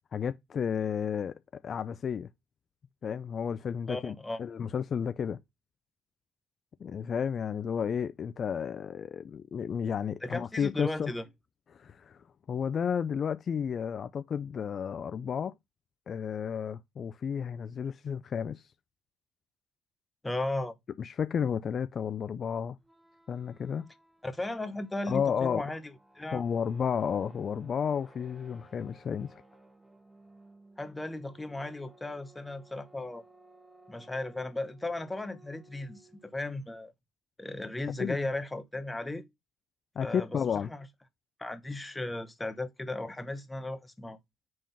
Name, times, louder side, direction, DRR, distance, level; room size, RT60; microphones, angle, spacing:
voice 1, 0.1-1.3 1.6-2.3 3.0-5.4 6.8-11.1 11.7-15.5 16.1-18.7 21.0-22.8 23.3-23.9 25.1-25.6 26.3-29.4 38.0-38.2 40.0-40.7, left 7 dB, 50° left, 0.4 m, -32 dB
voice 2, 3.9-4.4 10.2-11.2 20.2-20.8 24.2-26.4 30.8-33.2 33.9-36.9 37.4-39.3 40.0-40.4 40.7-40.9 41.4-44.2, left 2 dB, 15° left, 1.0 m, -36 dB
sound 1, 22.8-36.5, right 2 dB, 10° right, 1.4 m, -59 dB
5.1 x 3.8 x 5.5 m
hypercardioid pair, 65°, 0 cm